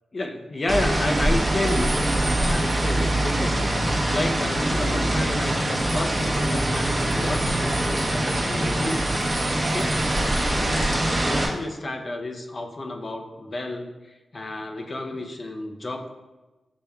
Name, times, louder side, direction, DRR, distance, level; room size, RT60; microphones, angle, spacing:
voice 1, 0.1-9.2 9.6-10.0 10.7-16.1, left 1 dB, 40° left, 3 dB, 0.6 m, -31 dB
sound 1, 0.7-11.5, right 1 dB, 30° right, 0.9 m, -23 dB
sound 2, 1.6-4.0 4.3-4.4 5.4-11.1, right 3 dB, 90° right, 0.8 m, -39 dB
6.9 x 3.3 x 2.3 m, 1.1 s
cardioid pair, 80°, 0 cm